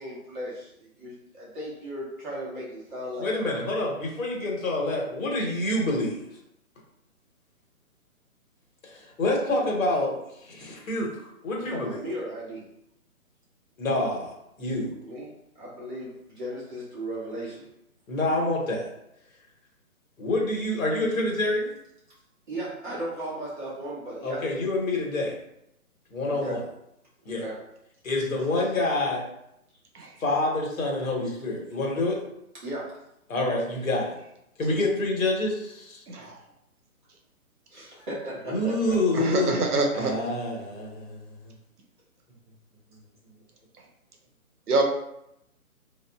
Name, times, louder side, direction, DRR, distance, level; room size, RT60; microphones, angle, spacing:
voice 1, 0.0-3.3 11.6-12.6 15.0-15.3 15.6-17.6 22.5-24.4 26.3-26.6 27.2-27.5 32.6-32.9 37.7-39.0, right 1 dB, 35° right, -7 dB, 1.1 m, -36 dB
voice 2, 3.2-6.2 8.9-12.0 13.8-14.9 18.1-18.9 20.2-21.7 24.2-25.4 26.1-26.6 27.2-27.4 28.0-29.2 30.2-32.2 33.3-34.1 34.6-36.0 38.5-39.5 39.9-41.5, left 2 dB, 65° left, -2 dB, 1.0 m, -27 dB
voice 3, 39.1-40.1 44.7-44.8, right 3 dB, 85° right, 2 dB, 0.9 m, -25 dB
3.2 x 2.5 x 2.2 m, 0.80 s
hypercardioid pair, 160°, 44 cm